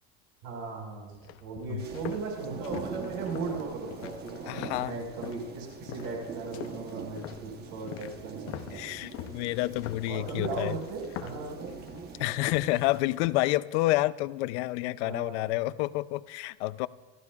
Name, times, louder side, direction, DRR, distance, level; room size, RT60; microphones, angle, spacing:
voice 1, 0.4-8.9 10.1-11.7 15.0-15.6, right 4 dB, 65° right, 5.1 m, -37 dB
sound 1, 1.1-5.5 5.9-6.2 6.5-13.3, left 12 dB, 45° left, 0.7 m, -43 dB
sound 2, 1.8-13.0, right 6 dB, 30° right, 1.1 m, -43 dB
voice 2, 4.4-5.0 8.7-10.8 12.2-16.9, left 18 dB, 80° left, 0.6 m, -29 dB
27.0 x 15.0 x 2.4 m
cardioid pair, 160°, 33 cm